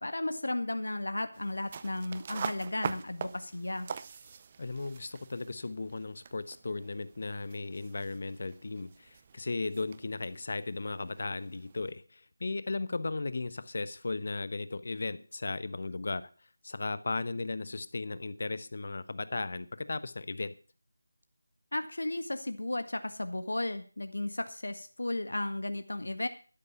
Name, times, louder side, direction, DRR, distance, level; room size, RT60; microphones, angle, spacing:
voice 1, 0.0-3.9 21.7-26.3, left 2 dB, 85° left, 1.7 m, -34 dB
sound 1, 1.3-11.9, right 6 dB, 25° right, 0.6 m, -44 dB
voice 2, 4.6-16.3 16.6-20.5, left 3 dB, 50° left, 1.0 m, -36 dB
12.5 x 11.0 x 5.6 m
figure-of-eight pair, 170°, 0 cm